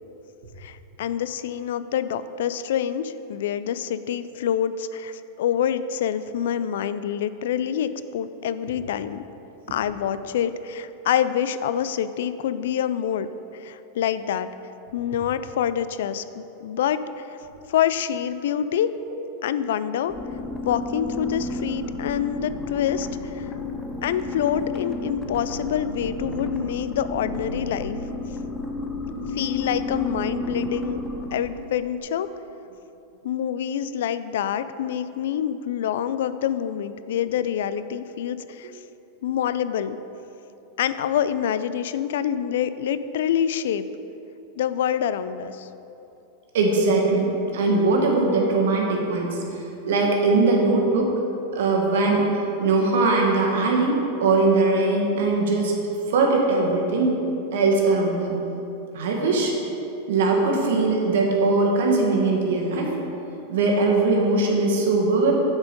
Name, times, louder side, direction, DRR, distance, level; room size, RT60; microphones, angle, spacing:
voice 1, 0.6-9.2 9.7-13.3 13.5-14.5 14.9-17.2 17.7-18.9 19.4-20.1 20.6-23.5 24.0-28.0 29.3-31.0 31.3-32.3 33.2-38.7 39.2-40.0 40.8-43.8 44.6-45.7, left 9 dB, 75° left, 13 dB, 0.3 m, -26 dB
sound 1, 20.1-31.8, left 2 dB, 10° left, 0.7 m, -32 dB
voice 2, 46.5-49.4 49.8-51.1 51.5-52.3 52.6-55.7 56.1-57.2 57.5-58.4 58.9-59.5 60.1-62.9 63.5-65.3, right 3 dB, 75° right, 0 dB, 1.4 m, -20 dB
7.5 x 4.8 x 5.2 m, 2.9 s
hypercardioid pair, 125°, 0 cm